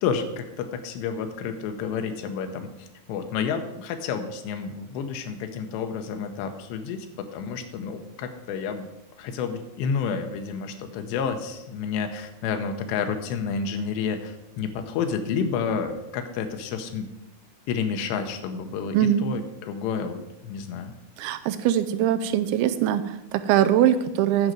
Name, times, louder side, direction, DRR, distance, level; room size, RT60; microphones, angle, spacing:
voice 1, 0.0-8.9 9.2-17.1 17.7-20.9, left 6 dB, 90° left, 6 dB, 3.1 m, -30 dB
voice 2, 18.9-19.2 21.2-24.5, right 11 dB, 85° right, 10 dB, 2.3 m, -22 dB
9.4 x 5.2 x 7.4 m, 0.96 s
omnidirectional pair, 4.8 m